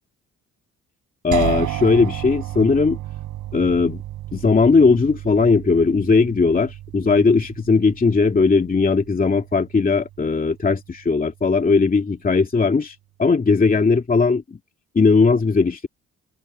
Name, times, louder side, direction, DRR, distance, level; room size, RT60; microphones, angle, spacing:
voice 1, 1.2-3.0 3.5-4.0 4.3-14.4 14.9-15.9, left 4 dB, 30° left, 2.5 m, -18 dB
sound 1, 1.3-11.1, right 14 dB, 85° right, 6.9 m, -33 dB
cardioid pair, 90°, 30 cm